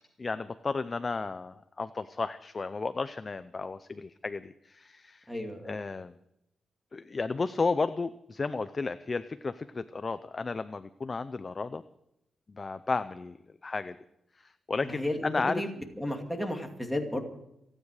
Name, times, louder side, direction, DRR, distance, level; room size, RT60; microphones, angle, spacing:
voice 1, 0.2-5.3 5.6-6.1 6.9-11.8 12.5-13.4 13.6-14.0 14.4-15.5, left 4 dB, 25° left, 12 dB, 0.5 m, -33 dB
voice 2, 5.3-5.8 14.8-17.2, left 1 dB, ahead, 2 dB, 2.4 m, -33 dB
28.5 x 9.7 x 4.9 m, 0.80 s
wide cardioid pair, 155°, 0 cm